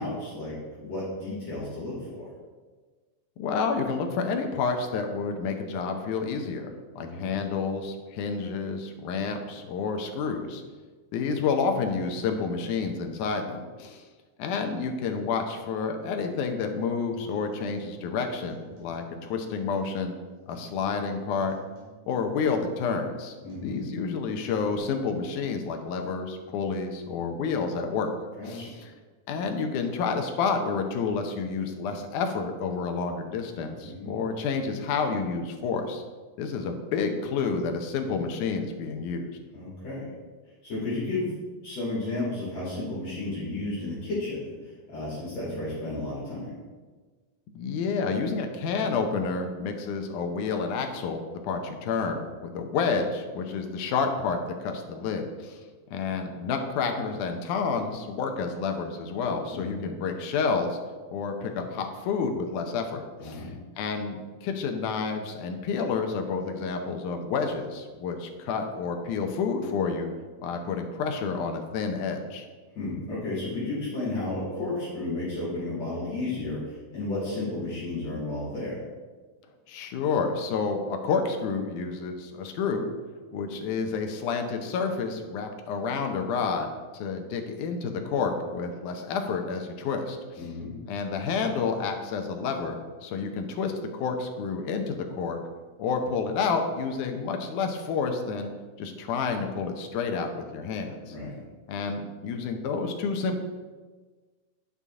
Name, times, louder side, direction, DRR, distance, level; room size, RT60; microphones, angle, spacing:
voice 1, 0.0-2.2 7.0-7.3 23.4-23.8 28.4-28.8 33.8-34.2 39.5-40.1 40.6-41.3 41.6-46.5 59.5-59.9 63.2-63.5 72.8-78.8 90.4-90.7 101.1-101.3, left 2 dB, 60° left, -9 dB, 3.6 m, -33 dB
voice 2, 3.4-10.6 11.1-14.0 14.4-20.1 20.5-21.6 22.1-23.4 23.6-28.1 28.5-28.7 29.3-36.0 36.4-39.3 47.5-55.6 55.9-60.8 61.1-63.5 63.8-70.1 70.4-72.5 79.7-82.8 83.3-86.7 86.9-90.4 90.9-95.4 95.8-98.5 98.8-101.1 101.7-103.4, left 5 dB, 80° left, 4 dB, 2.3 m, -29 dB
sound 1, 16.8-17.1 17.5-18.2 18.5-19.2 19.5-20.2 20.5-21.2 21.5-22.2 22.5-23.2 23.5-24.2 24.5-24.8, right 2 dB, 75° right, 4.0 m, -54 dB
9.9 x 5.5 x 3.6 m, 1.4 s
omnidirectional pair, 3.6 m